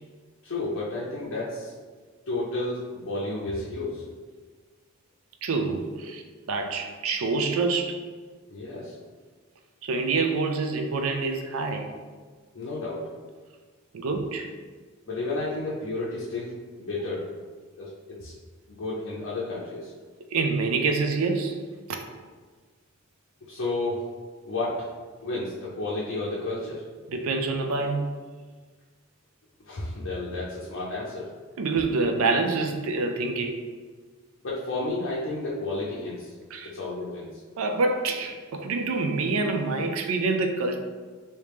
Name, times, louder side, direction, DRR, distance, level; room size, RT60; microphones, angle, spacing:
voice 1, 0.4-1.7 2.3-4.1 8.5-9.0 12.5-13.1 15.1-17.3 17.7-18.3 18.7-19.9 23.5-24.1 24.4-24.9 25.2-26.8 29.7-31.3 34.4-36.3 36.6-37.4, left 2 dB, 65° left, -6 dB, 0.6 m, -32 dB
voice 2, 5.4-6.2 6.5-8.0 9.8-11.9 13.9-14.5 20.3-21.6 21.9-22.0 27.1-28.1 31.6-33.6 36.5-36.7 37.6-40.8, right 3 dB, 75° right, 4 dB, 0.4 m, -26 dB
3.1 x 2.8 x 3.4 m, 1.5 s
head